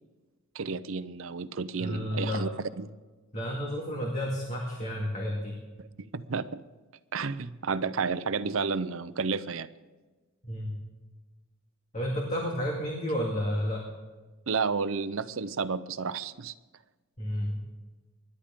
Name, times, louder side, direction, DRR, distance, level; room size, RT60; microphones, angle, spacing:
voice 1, 0.5-2.5 2.8-2.9 5.8-5.9 6.1-6.6 7.1-9.7 14.5-16.5, right 5 dB, 70° right, 14 dB, 0.6 m, -31 dB
voice 2, 1.8-2.5 3.3-5.6 10.4-10.8 11.9-13.9 17.2-17.6, equal, 35° left, -1 dB, 2.1 m, -31 dB
25.5 x 11.5 x 3.7 m, 1.3 s
head